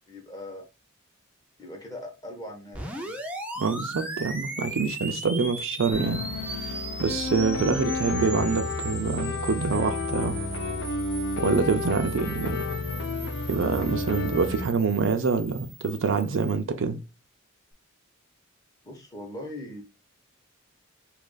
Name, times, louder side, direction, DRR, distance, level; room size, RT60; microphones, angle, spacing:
voice 1, 0.1-0.6 1.6-3.2 18.8-19.8, left 1 dB, 20° left, 0.9 m, -40 dB
sound 1, 2.7-16.6, right 2 dB, 5° right, 0.5 m, -38 dB
voice 2, 3.6-6.2 6.6-10.4 11.4-12.6 13.5-17.0, right 5 dB, 65° right, 0.4 m, -26 dB
sound 2, 5.9-14.7, left 3 dB, 60° left, 0.6 m, -31 dB
2.9 x 2.5 x 3.8 m
head